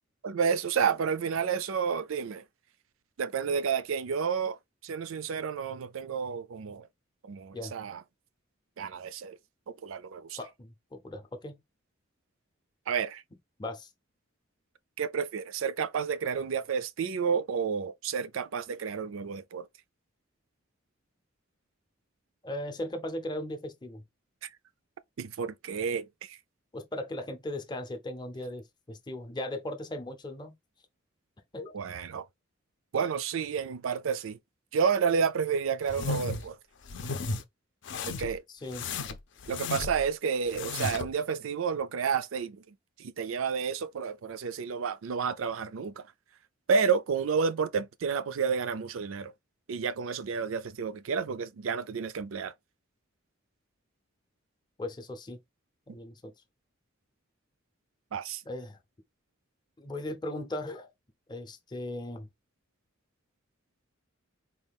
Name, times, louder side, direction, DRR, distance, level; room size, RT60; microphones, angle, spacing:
voice 1, 0.2-2.4 3.2-4.6 4.8-6.9 7.2-8.0 8.8-9.4 9.7-10.4 12.9-13.2 15.0-19.7 24.4-24.5 25.2-26.4 31.7-32.3 32.9-34.4 34.7-36.6 38.0-38.4 39.5-46.1 46.7-49.3 49.7-52.5 58.1-58.4, right 6 dB, 80° right, 0.4 m, -30 dB
voice 2, 10.4-11.6 13.6-13.9 22.4-24.0 26.7-30.5 31.5-31.8 38.5-38.9 54.8-55.4 55.9-56.3 58.5-58.8 59.8-60.9 61.3-62.3, left 1 dB, 20° left, 0.6 m, -38 dB
sound 1, 35.9-36.5 36.9-37.4 37.8-38.4 38.7-40.1 40.5-41.1, left 4 dB, 60° left, 0.6 m, -34 dB
4.2 x 2.3 x 3.4 m
head